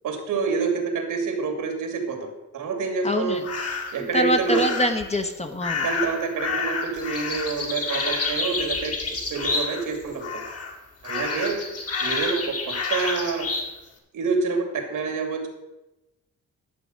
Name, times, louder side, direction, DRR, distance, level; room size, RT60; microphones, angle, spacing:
voice 1, 0.0-3.4 3.9-4.6 5.8-8.9 9.3-10.2 11.0-11.6 12.0-13.5 14.1-15.5, right 5 dB, 80° right, 4 dB, 2.7 m, -27 dB
voice 2, 3.0-3.4 4.1-5.9, left 1 dB, 20° left, 7 dB, 1.0 m, -24 dB
sound 1, 3.4-4.0 4.5-5.0 5.6-9.9 10.2-10.7 11.0-13.7, left 4 dB, 50° left, 2.1 m, -29 dB
11.0 x 7.0 x 6.4 m, 0.98 s
cardioid pair, 130°, 31 cm